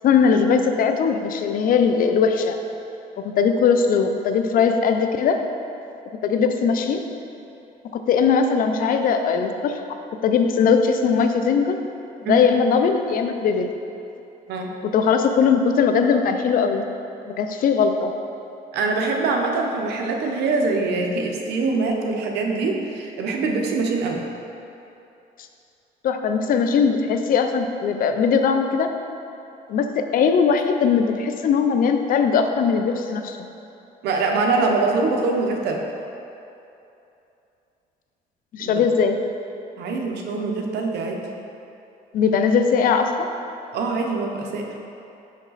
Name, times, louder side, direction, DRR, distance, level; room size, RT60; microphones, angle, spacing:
voice 1, 0.0-2.6 3.2-5.4 6.2-7.0 7.9-9.8 10.2-11.8 12.2-13.7 14.8-16.8 17.3-18.1 26.0-28.9 29.7-33.4 38.5-39.2 42.1-43.3, left 6 dB, 55° left, 7 dB, 0.5 m, -20 dB
voice 2, 18.7-24.2 34.0-35.8 38.6-38.8 39.8-41.2 43.7-44.8, right 3 dB, 80° right, 2 dB, 0.8 m, -23 dB
6.4 x 5.1 x 4.0 m, 2.8 s
cardioid pair, 110°, 17 cm